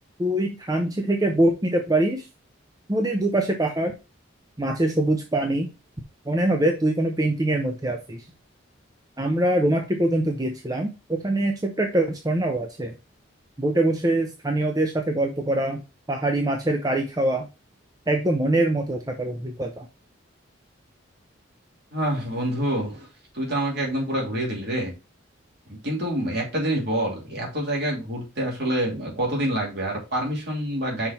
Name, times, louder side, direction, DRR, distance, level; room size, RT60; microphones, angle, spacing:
voice 1, 0.2-2.3 2.9-3.9 4.6-5.7 6.3-8.3 9.2-12.9 13.6-15.8 16.1-17.5 18.1-19.9, right 1 dB, 20° right, 3 dB, 0.6 m, -23 dB
voice 2, 21.9-23.1 23.3-24.9 25.8-31.1, right 1 dB, 55° right, -2 dB, 2.9 m, -26 dB
5.9 x 4.2 x 4.2 m, 0.28 s
head